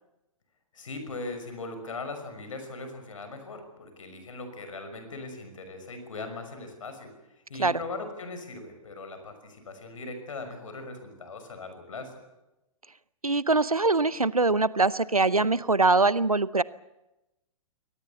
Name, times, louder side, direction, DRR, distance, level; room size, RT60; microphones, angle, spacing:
voice 1, 0.7-12.1, left 3 dB, 65° left, 7 dB, 5.9 m, -39 dB
voice 2, 13.2-16.6, right 3 dB, 90° right, 19 dB, 0.8 m, -23 dB
23.5 x 18.5 x 8.3 m, 0.96 s
figure-of-eight pair, 110°, 18 cm